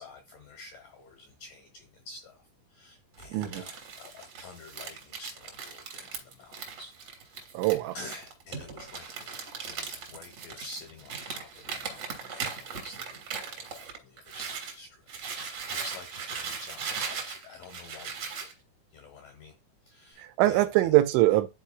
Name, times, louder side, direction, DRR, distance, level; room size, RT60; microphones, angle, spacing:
voice 1, 0.0-6.9 7.2-7.5 7.9-18.5 18.9-19.6 19.8-21.0, left 2 dB, 85° left, 1.9 m, -49 dB
Crumpling crinkling, 3.2-14.8 15.1-18.5, right 5 dB, 60° right, 1.7 m, -39 dB
voice 2, 3.3-3.6 7.5-8.0 20.2-21.5, right 16 dB, 85° right, 3.0 m, -23 dB
11.5 x 4.4 x 2.3 m
omnidirectional pair, 5.4 m